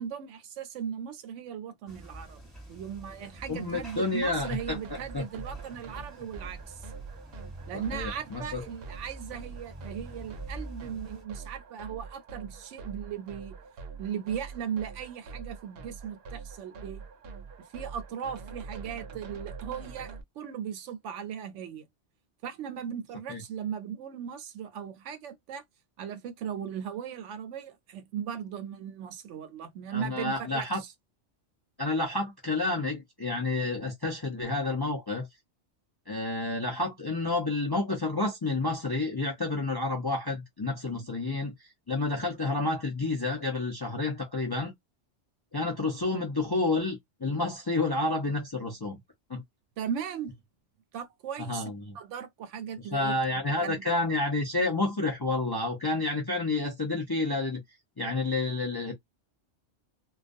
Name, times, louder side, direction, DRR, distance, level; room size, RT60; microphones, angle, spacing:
voice 1, 0.0-2.4 2.7-6.8 7.7-13.6 14.0-17.0 17.7-21.9 22.4-25.6 26.0-30.9 49.8-50.3 50.9-51.7 51.9-53.2 53.6-53.8, right 8 dB, 80° right, 0.9 m, -37 dB
sound 1, 1.9-11.2, right 1 dB, ahead, 1.1 m, -46 dB
voice 2, 3.5-4.8 5.1-5.2 7.7-8.7 23.3-23.4 29.9-30.8 31.8-35.3 36.1-41.5 41.9-44.7 45.5-49.0 49.3-49.4 51.4-51.9 52.9-57.6 58.0-58.9, left 2 dB, 35° left, 0.4 m, -30 dB
sound 2, 4.4-20.2, right 5 dB, 65° right, 0.7 m, -44 dB
2.3 x 2.2 x 2.5 m
omnidirectional pair, 1.2 m